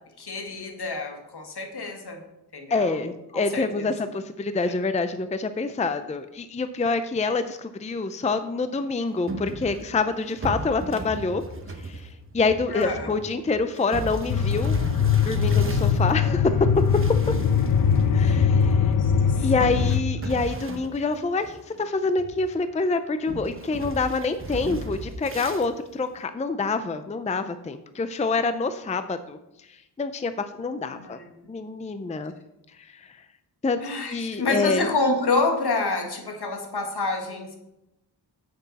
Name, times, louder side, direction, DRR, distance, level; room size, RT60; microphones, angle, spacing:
voice 1, 0.2-2.2 2.5-3.0 3.3-3.9 4.6-4.7 12.7-13.1 18.1-19.7 30.9-31.3 33.8-37.6, left 3 dB, 70° left, 3 dB, 1.9 m, -28 dB
voice 2, 2.7-11.4 11.8-12.1 12.3-14.8 15.3-16.8 18.1-18.9 19.4-29.4 30.0-31.2 31.5-32.3 32.8-32.9 33.6-33.8 34.1-34.9, left 3 dB, 20° left, 10 dB, 0.5 m, -26 dB
sound 1, 9.3-16.2 16.7-18.0 18.3-18.4 19.6-21.8 22.2-22.7 23.3-25.7, right 2 dB, 30° right, 1.0 m, -36 dB
sound 2, 14.3-20.0, left 7 dB, 55° left, 0.7 m, -21 dB
9.9 x 7.8 x 4.1 m, 0.89 s
wide cardioid pair, 135°, 40 cm